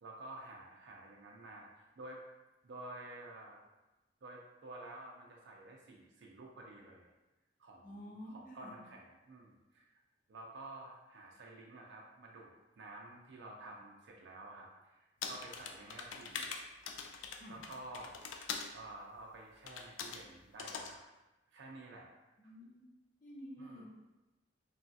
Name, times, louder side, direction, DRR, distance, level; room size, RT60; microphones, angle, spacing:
voice 1, 0.0-2.2 2.6-3.6 4.2-7.1 7.6-9.9 10.3-12.5 12.8-16.5 17.5-18.2 18.5-21.0 21.5-22.1 22.4-22.5 23.6-23.8, right 2 dB, 65° right, -1 dB, 0.4 m, -51 dB
voice 2, 7.8-8.7 17.4-17.6 22.4-22.8 23.2-23.8, equal, 45° left, -3 dB, 0.7 m, -50 dB
sound 1, 15.2-18.7 19.7-20.2 20.6-20.9, left 5 dB, 80° left, 0.3 m, -43 dB
3.1 x 2.3 x 2.6 m, 1.0 s
head